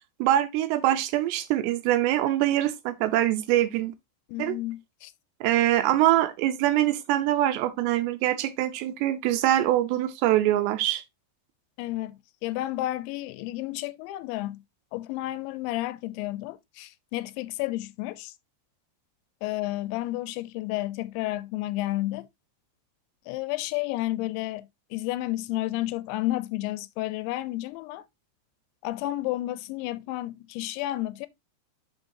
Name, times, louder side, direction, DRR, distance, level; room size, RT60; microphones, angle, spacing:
voice 1, 0.2-3.9 4.4-4.6 5.4-11.0, right 13 dB, 80° right, 2.7 m, -24 dB
voice 2, 4.3-5.1 11.8-14.6 14.9-18.3 19.4-22.3 23.3-28.1 28.8-31.3, left 16 dB, 85° left, 2.9 m, -31 dB
10.5 x 4.5 x 2.7 m
omnidirectional pair, 5.2 m